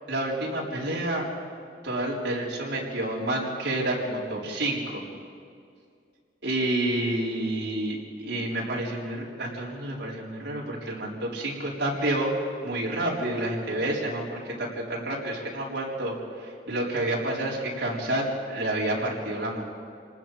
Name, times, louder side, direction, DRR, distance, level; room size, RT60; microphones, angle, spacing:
voice 1, 0.1-1.2 1.8-5.0 6.4-12.3 12.6-16.2 16.7-19.6, right 1 dB, 80° right, -4 dB, 4.5 m, -29 dB
28.0 x 19.5 x 5.1 m, 2.3 s
head